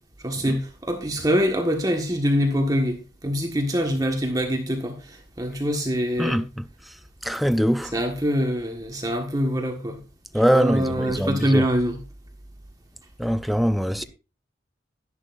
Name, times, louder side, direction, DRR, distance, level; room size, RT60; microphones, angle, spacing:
voice 1, 0.2-6.4 7.9-10.0 10.5-12.0 14.0-14.1, equal, 20° right, 1.5 m, -24 dB
voice 2, 6.2-6.6 7.2-7.9 10.3-11.6 13.2-14.0, equal, ahead, 0.4 m, -22 dB
11.5 x 11.0 x 2.5 m
head